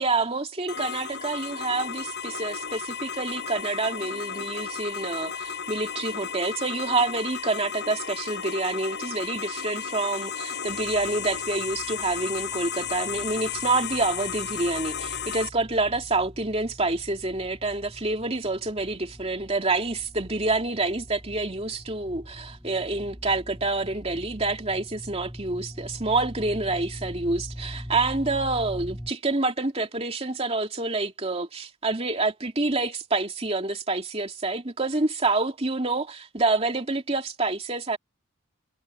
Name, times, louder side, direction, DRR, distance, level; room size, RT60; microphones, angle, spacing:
voice 1, 0.0-38.0, right 3 dB, 30° right, 2.7 m, -27 dB
sound 1, 0.7-15.5, left 7 dB, 50° left, 6.0 m, -34 dB
sound 2, 10.7-29.1, equal, 5° right, 6.1 m, -43 dB
head